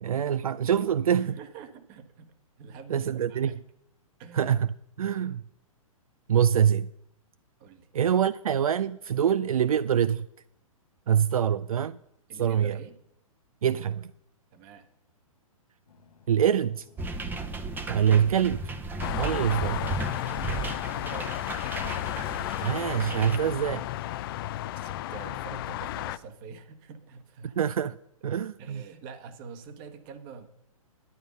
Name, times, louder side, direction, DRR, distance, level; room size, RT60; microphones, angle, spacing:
voice 1, 0.0-1.4 2.9-3.5 4.3-4.7 5.0-5.4 6.3-6.9 7.9-10.3 11.1-12.0 12.4-12.8 13.6-14.1 16.3-16.9 17.9-18.7 19.2-19.9 22.6-23.9 27.6-28.0 28.2-28.8, right 9 dB, 80° right, 0.4 m, -25 dB
voice 2, 1.2-3.6 4.2-4.6 7.6-7.9 12.3-13.0 14.5-14.9 20.9-21.3 24.8-27.6 28.6-30.5, right 6 dB, 35° right, 1.3 m, -46 dB
sound 1, 15.9-21.1, left 4 dB, 80° left, 1.6 m, -54 dB
sound 2, 17.0-23.4, right 3 dB, 10° right, 0.7 m, -35 dB
sound 3, 19.0-26.2, left 14 dB, 40° left, 0.4 m, -33 dB
11.0 x 9.1 x 5.3 m
hypercardioid pair, 125°, 18 cm